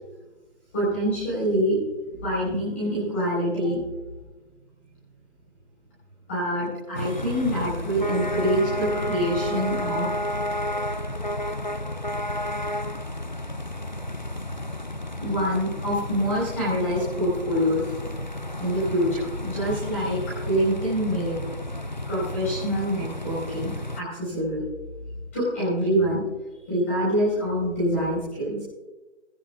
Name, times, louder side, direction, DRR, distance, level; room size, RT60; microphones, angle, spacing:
voice 1, 0.7-1.8 2.2-3.8 6.3-10.1 15.2-17.9 18.6-21.4 22.1-24.6 25.3-26.2 26.7-28.6, equal, 10° left, -8 dB, 4.1 m, -25 dB
sound 1, 6.9-24.0, left 1 dB, 40° left, 0.5 m, -31 dB
18.5 x 17.0 x 2.3 m, 1.1 s
figure-of-eight pair, 180°, 35 cm